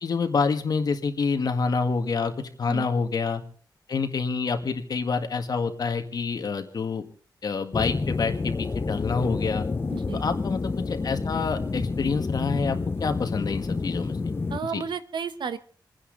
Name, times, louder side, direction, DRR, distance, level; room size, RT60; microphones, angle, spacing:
voice 1, 0.0-3.4 3.9-7.0 7.4-9.7 10.2-14.3 14.7-14.8, left 4 dB, 55° left, 6 dB, 1.8 m, -27 dB
sound 1, 7.7-14.6, left 4 dB, 30° left, 0.6 m, -29 dB
voice 2, 9.9-10.2 14.5-15.6, right 6 dB, 75° right, 12 dB, 1.2 m, -32 dB
28.5 x 10.0 x 4.0 m, 0.40 s
wide cardioid pair, 150°, 8 cm